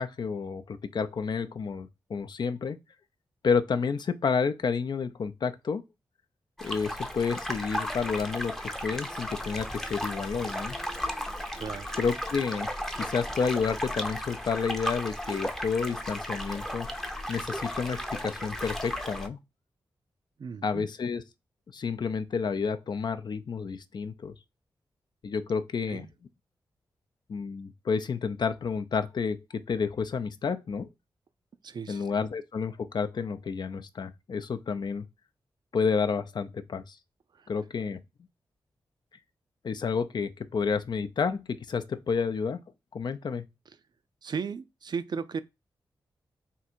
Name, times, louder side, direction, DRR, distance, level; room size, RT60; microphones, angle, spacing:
voice 1, 0.0-2.8 3.4-5.8 6.6-8.6 8.8-10.8 12.0-12.7 13.0-16.9 17.3-19.4 20.6-21.2 21.7-24.3 25.2-26.1 27.3-30.9 31.9-35.1 35.7-37.0 37.5-38.0 39.6-42.6 42.9-43.5, left 5 dB, 55° left, 0.5 m, -30 dB
sound 1, 6.6-19.3, equal, 5° left, 0.6 m, -35 dB
voice 2, 11.5-12.0 20.4-20.9 25.9-26.1 31.6-32.1 37.3-37.5 43.7-43.8 44.2-45.4, right 5 dB, 55° right, 0.4 m, -36 dB
3.6 x 2.6 x 4.3 m
cardioid pair, 55°, 9 cm